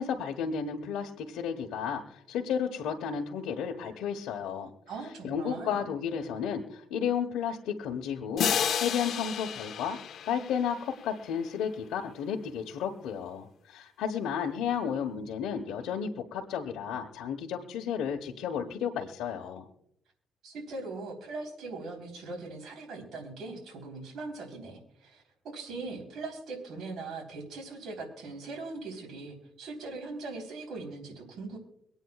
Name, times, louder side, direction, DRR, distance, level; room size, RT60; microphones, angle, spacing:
voice 1, 0.0-4.7 5.2-10.0 10.3-19.6, left 7 dB, 90° left, 0 dB, 1.1 m, -33 dB
voice 2, 4.9-5.8 20.4-31.6, right 3 dB, 70° right, 0 dB, 3.8 m, -40 dB
sound 1, 8.4-11.2, left 8 dB, 65° left, 1.1 m, -31 dB
25.0 x 9.1 x 2.4 m, 0.74 s
cardioid pair, 90°, 0 cm